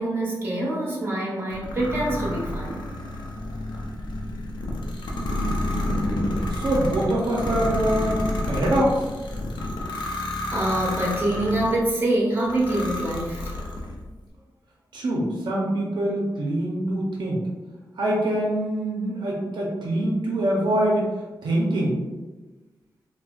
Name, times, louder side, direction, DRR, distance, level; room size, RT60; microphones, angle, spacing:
voice 1, 0.0-2.9 9.6-9.8 10.2-13.6, right 1 dB, 30° right, -4 dB, 1.0 m, -25 dB
sound 1, 1.5-11.8 12.4-14.0, left 1 dB, 85° left, 0.5 m, -30 dB
voice 2, 5.1-9.1 14.9-17.4 18.0-21.1 21.4-22.0, right 1 dB, 75° right, -3 dB, 0.6 m, -25 dB
4.1 x 2.2 x 2.3 m, 1.2 s
wide cardioid pair, 105°, 8 cm